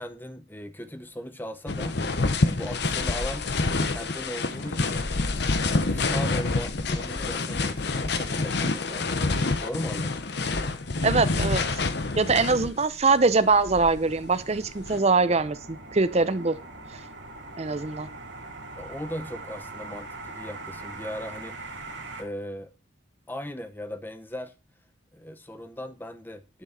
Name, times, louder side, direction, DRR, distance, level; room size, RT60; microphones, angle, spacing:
voice 1, 0.0-2.0 2.6-5.1 5.9-10.2 18.8-21.6 22.2-22.7 23.3-24.5 25.1-26.6, equal, 10° left, 0.8 m, -38 dB
sound 1, 1.7-12.9 13.5-15.0, left 3 dB, 55° left, 0.9 m, -27 dB
voice 2, 11.0-11.6 12.2-16.6 16.9-17.0 17.6-18.1, right 4 dB, 35° right, 0.6 m, -23 dB
sound 2, 13.1-22.2, right 2 dB, 65° right, 2.2 m, -42 dB
10.5 x 6.3 x 4.3 m
head